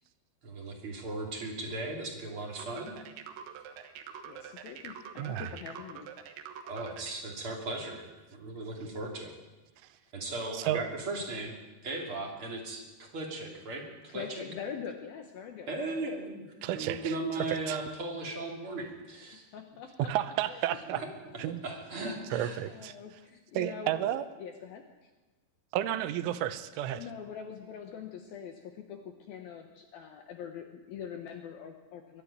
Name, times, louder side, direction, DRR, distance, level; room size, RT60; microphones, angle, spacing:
voice 1, 0.4-2.9 6.6-9.3 10.1-11.6 11.8-14.4 15.7-16.5 16.7-19.5 20.9-21.1 21.6-22.6, right 2 dB, 30° right, 0 dB, 3.1 m, -37 dB
sound 1, 2.6-7.2, right 8 dB, 70° right, 3.0 m, -45 dB
voice 2, 4.2-6.1 14.1-15.7 19.5-20.1 20.5-20.8 22.6-24.1 24.4-25.1 26.9-32.2, left 7 dB, 70° left, 6 dB, 2.4 m, -43 dB
voice 3, 5.2-5.5 9.8-10.0 10.5-10.8 16.6-17.2 17.5-17.8 20.0-21.0 21.4-21.6 22.3-23.0 23.5-24.2 25.7-27.0, right 12 dB, 85° right, 12 dB, 3.3 m, -32 dB
22.0 x 12.0 x 9.7 m, 1.2 s
omnidirectional pair, 5.5 m